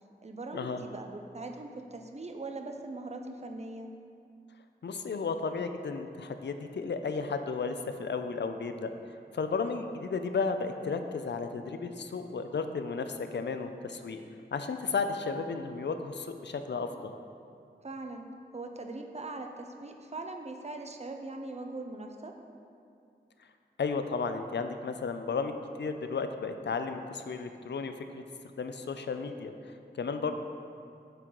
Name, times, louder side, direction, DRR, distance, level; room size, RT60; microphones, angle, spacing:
voice 1, 0.2-3.9 17.8-18.3 18.5-22.3 30.2-30.3, right 2 dB, 35° right, 4 dB, 0.6 m, -41 dB
voice 2, 4.8-8.9 9.3-14.2 14.5-17.1 23.8-25.5 25.8-27.9 28.6-30.3, left 4 dB, 70° left, 7 dB, 0.4 m, -33 dB
8.0 x 3.8 x 4.6 m, 2.4 s
wide cardioid pair, 75°, 19 cm